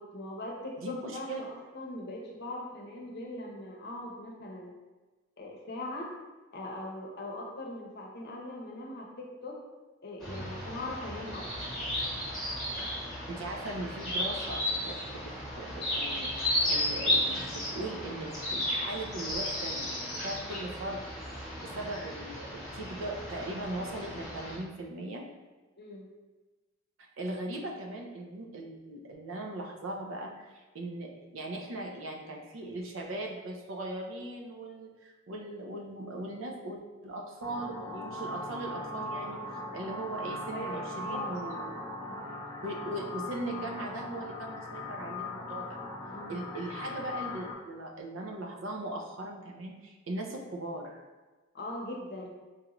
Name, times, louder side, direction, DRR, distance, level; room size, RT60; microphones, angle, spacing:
voice 1, 0.0-4.7 5.4-6.1 6.5-9.6 10.0-11.7 25.8-26.1 40.5-40.8 41.1-42.8 46.1-46.4 51.5-52.3, left 1 dB, 55° left, -1 dB, 0.7 m, -41 dB
voice 2, 0.8-1.4 13.3-21.0 21.6-25.2 27.2-39.4 39.7-41.7 42.6-45.8 46.3-51.0, right 1 dB, 75° right, 1 dB, 0.6 m, -39 dB
sound 1, 10.2-24.6, left 1 dB, ahead, 1.2 m, -34 dB
sound 2, 37.4-47.5, left 1 dB, 20° left, 0.4 m, -39 dB
4.6 x 2.5 x 2.9 m, 1.2 s
head